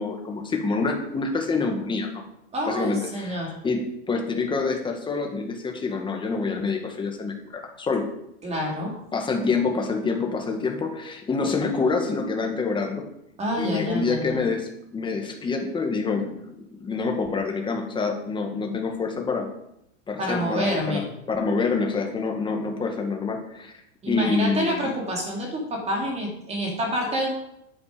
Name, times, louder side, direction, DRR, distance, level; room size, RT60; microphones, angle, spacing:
voice 1, 0.0-2.2 2.7-3.4 3.6-8.0 9.1-13.1 13.6-16.5 16.8-19.5 20.1-21.0 21.3-23.7 24.1-24.9, left 4 dB, 15° left, 3 dB, 1.7 m, -27 dB
voice 2, 2.5-3.6 8.4-9.0 13.4-14.4 20.2-21.1 24.0-27.3, equal, 20° right, 0 dB, 2.7 m, -27 dB
9.6 x 9.0 x 5.1 m, 0.80 s
supercardioid pair, 145°, 36 cm